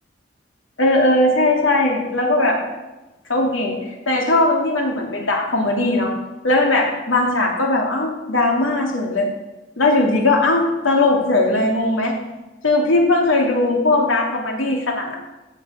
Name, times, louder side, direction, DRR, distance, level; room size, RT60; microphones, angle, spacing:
voice 1, 0.8-2.6 3.3-3.7 4.1-6.1 6.4-9.3 9.8-12.2 12.6-15.2, left 2 dB, 80° left, 0 dB, 2.9 m, -18 dB
16.0 x 7.1 x 7.3 m, 1.1 s
head